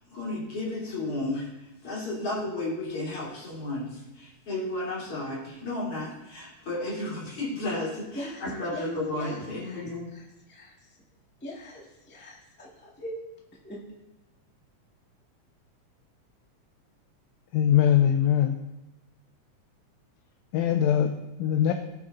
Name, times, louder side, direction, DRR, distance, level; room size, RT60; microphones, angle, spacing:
voice 1, 0.1-1.5 1.8-10.1, left 2 dB, 45° left, -7 dB, 4.8 m, -33 dB
voice 2, 8.1-9.8 10.1-10.7 11.4-13.2 13.6-13.8, equal, 5° left, -4 dB, 1.5 m, -41 dB
voice 3, 17.5-18.6 20.5-21.7, left 10 dB, 80° left, 6 dB, 1.8 m, -22 dB
18.0 x 10.0 x 2.8 m, 0.99 s
omnidirectional pair, 3.5 m